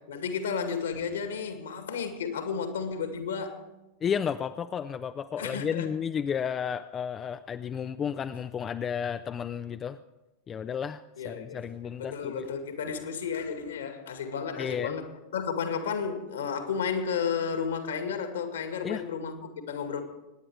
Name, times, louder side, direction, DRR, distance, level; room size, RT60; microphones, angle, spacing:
voice 1, 0.1-3.6 5.4-5.9 11.2-11.7 12.0-15.1 15.3-20.0, left 6 dB, 65° left, 7 dB, 2.0 m, -32 dB
voice 2, 4.0-10.0 10.5-12.5 14.6-14.9 18.8-19.0, left 7 dB, 25° left, 10 dB, 0.5 m, -32 dB
24.5 x 10.0 x 4.8 m, 1.0 s
figure-of-eight pair, 90°, 0 cm